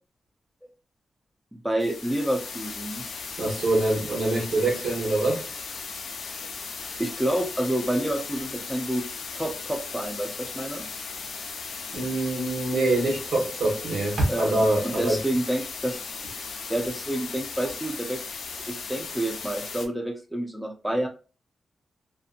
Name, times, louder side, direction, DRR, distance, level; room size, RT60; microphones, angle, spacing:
voice 1, 1.6-3.1 7.0-9.0 9.3-10.9 14.3-16.0 16.7-18.3 18.7-21.1, right 1 dB, 5° right, 2 dB, 0.4 m, -28 dB
sound 1, 1.8-19.9, left 5 dB, 75° left, 0.5 m, -37 dB
voice 2, 3.4-5.4 11.9-15.2, right 2 dB, 85° right, -1 dB, 1.1 m, -24 dB
2.6 x 2.6 x 2.4 m, 0.35 s
wide cardioid pair, 145°, 0 cm